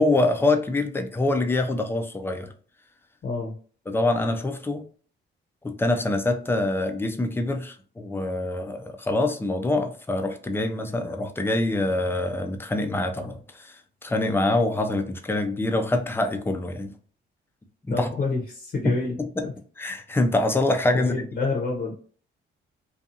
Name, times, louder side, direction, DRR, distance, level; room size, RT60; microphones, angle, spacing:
voice 1, 0.0-2.5 3.9-4.9 5.6-16.9 17.9-18.1 18.8-18.9 19.4-19.5 19.8-21.1, left 2 dB, 10° left, 6 dB, 0.4 m, -25 dB
voice 2, 3.2-3.5 17.9-19.2 19.4-19.5 20.9-22.0, left 3 dB, 55° left, -1 dB, 0.7 m, -28 dB
2.6 x 2.3 x 2.7 m, 0.43 s
cardioid pair, 90°, 20 cm